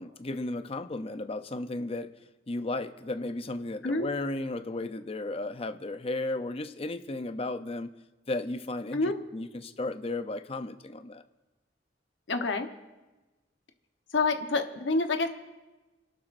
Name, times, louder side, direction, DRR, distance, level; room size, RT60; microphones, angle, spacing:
voice 1, 0.0-2.1 2.5-7.9 8.3-11.2, left 2 dB, 35° left, 10 dB, 0.6 m, -34 dB
voice 2, 12.3-12.7 14.1-15.3, left 3 dB, 90° left, 6 dB, 1.1 m, -27 dB
28.0 x 12.0 x 2.6 m, 1.1 s
head